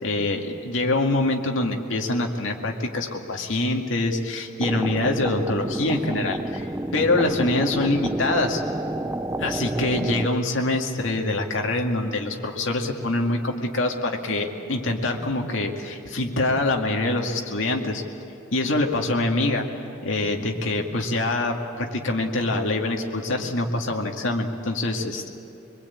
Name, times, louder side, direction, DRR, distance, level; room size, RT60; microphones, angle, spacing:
voice 1, 0.0-6.7 6.9-8.6 9.4-18.0 18.5-19.6 20.0-25.3, left 2 dB, 75° left, 2 dB, 2.2 m, -25 dB
sound 1, 4.6-10.3, right 1 dB, 15° right, 0.5 m, -29 dB
24.0 x 22.5 x 8.6 m, 2.8 s
head